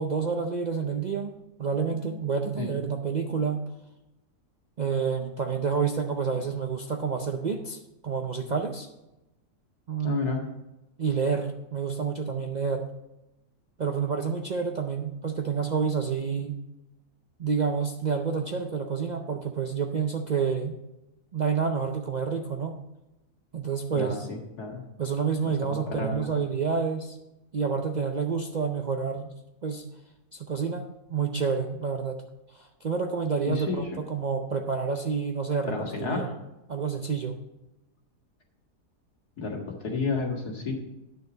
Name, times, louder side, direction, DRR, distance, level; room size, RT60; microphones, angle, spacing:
voice 1, 0.0-3.6 4.8-8.9 9.9-10.2 11.0-12.9 13.8-16.6 17.4-20.7 21.3-22.8 23.5-24.3 25.0-27.2 27.5-29.3 29.6-29.8 30.3-32.2 32.5-35.7 36.0-36.3 36.7-37.4, right 5 dB, 70° right, 3 dB, 0.4 m, -29 dB
voice 2, 10.0-10.4 23.9-24.8 25.6-26.3 33.5-33.8 35.7-36.3 39.4-40.7, left 4 dB, 75° left, 0 dB, 2.3 m, -31 dB
9.6 x 6.7 x 5.0 m, 0.94 s
omnidirectional pair, 1.7 m